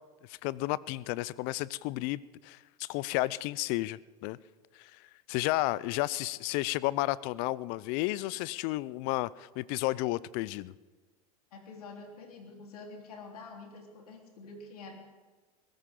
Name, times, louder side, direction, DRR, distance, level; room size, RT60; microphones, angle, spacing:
voice 1, 0.3-4.4 4.8-4.9 5.3-10.7, left 18 dB, 50° left, 20 dB, 0.6 m, -32 dB
voice 2, 11.5-14.9, left 3 dB, 85° left, 1 dB, 3.8 m, -47 dB
21.0 x 18.0 x 3.8 m, 1.3 s
hypercardioid pair, 105°, 19 cm